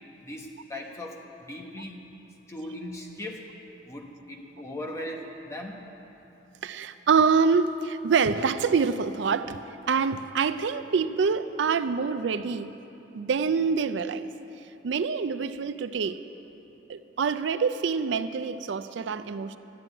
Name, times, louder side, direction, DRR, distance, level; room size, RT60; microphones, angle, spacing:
voice 1, 0.2-2.0 2.5-3.5 3.9-5.9, left 1 dB, 15° left, 0 dB, 1.1 m, -38 dB
voice 2, 6.6-9.6 9.9-12.7 13.1-14.3 14.8-16.2 16.9-19.6, right 5 dB, 75° right, 12 dB, 0.4 m, -26 dB
12.5 x 7.6 x 9.8 m, 3.0 s
head